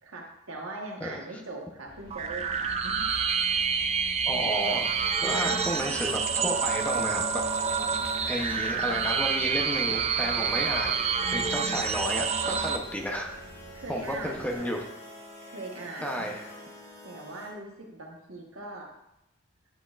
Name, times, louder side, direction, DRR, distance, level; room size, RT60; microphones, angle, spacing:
voice 1, 0.0-3.0 5.4-5.5 13.7-14.7 15.4-16.3 17.0-18.9, right 2 dB, 85° right, 1 dB, 1.3 m, -41 dB
sound 1, 1.8-14.5, left 1 dB, 45° left, 2.3 m, -51 dB
sound 2, 2.1-12.8, right 6 dB, 30° right, 0.4 m, -28 dB
voice 2, 4.3-4.9 5.2-7.4 8.3-13.3 13.9-14.8 16.0-16.5, equal, 5° left, 1 dB, 0.7 m, -32 dB
sound 3, 4.6-17.5, equal, 30° left, 2.6 m, -47 dB
9.3 x 6.3 x 2.5 m, 0.85 s
head